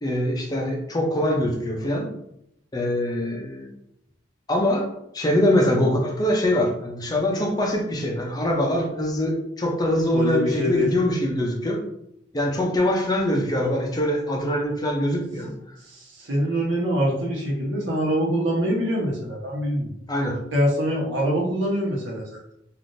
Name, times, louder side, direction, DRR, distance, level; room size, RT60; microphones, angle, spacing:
voice 1, 0.0-2.1 2.7-3.7 4.5-4.9 5.1-11.8 12.3-15.5 20.1-20.4, left 1 dB, 20° left, 1 dB, 0.5 m, -23 dB
voice 2, 10.1-10.9 15.8-19.9 20.5-22.2, equal, 75° right, -3 dB, 1.0 m, -24 dB
3.4 x 2.5 x 2.6 m, 0.77 s
head